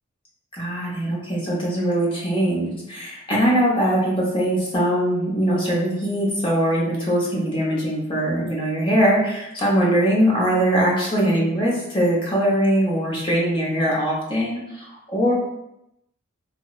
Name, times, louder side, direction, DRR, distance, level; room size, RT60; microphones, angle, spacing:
voice 1, 0.5-15.3, equal, 25° left, -5 dB, 0.7 m, -21 dB
2.9 x 2.0 x 2.3 m, 0.83 s
head